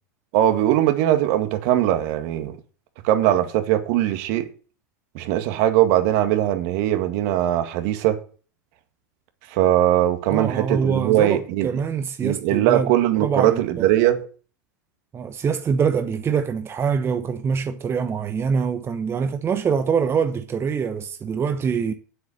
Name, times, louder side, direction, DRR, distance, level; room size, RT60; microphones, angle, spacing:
voice 1, 0.3-2.6 3.0-4.5 5.1-8.2 9.5-11.7 12.2-14.2, right 12 dB, 60° right, 2.0 m, -20 dB
voice 2, 10.3-12.9 13.2-13.9 15.1-21.9, right 6 dB, 25° right, 1.1 m, -24 dB
9.5 x 8.1 x 6.7 m
hypercardioid pair, 95°, 9 cm